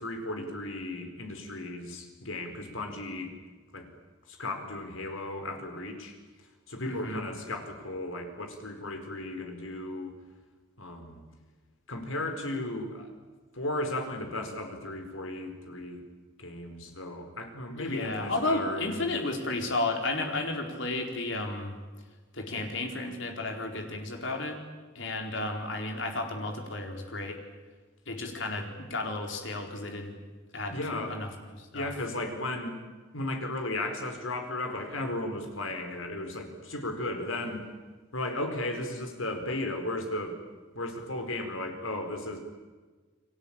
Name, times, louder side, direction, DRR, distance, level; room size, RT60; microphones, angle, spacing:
voice 1, 0.0-3.3 3.7-3.9 4.3-6.2 6.7-10.1 10.8-11.2 11.9-13.1 13.5-16.0 16.4-18.9 30.7-31.2 31.7-32.8 33.1-37.7 38.1-40.4 40.7-42.4, left 2 dB, 85° left, 5 dB, 4.7 m, -35 dB
voice 2, 6.8-7.2 17.8-21.8 22.3-24.6 24.9-27.4 28.1-30.2 30.5-31.9, left 2 dB, 65° left, 3 dB, 4.5 m, -33 dB
30.0 x 22.0 x 8.9 m, 1.4 s
head